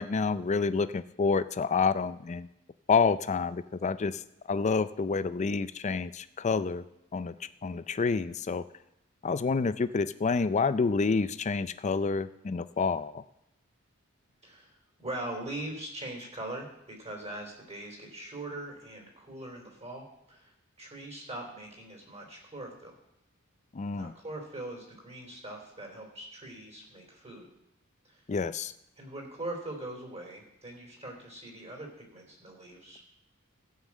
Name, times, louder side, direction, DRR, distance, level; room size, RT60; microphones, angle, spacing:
voice 1, 0.0-2.5 2.9-4.2 4.5-6.8 7.1-7.3 7.6-8.6 9.2-13.2 23.7-24.1 28.3-28.7, left 4 dB, 35° left, 13 dB, 0.4 m, -28 dB
voice 2, 14.4-22.9 23.9-27.5 28.1-28.2 29.0-33.0, right 1 dB, 30° right, 0 dB, 3.5 m, -41 dB
15.0 x 5.7 x 7.3 m, 0.86 s
head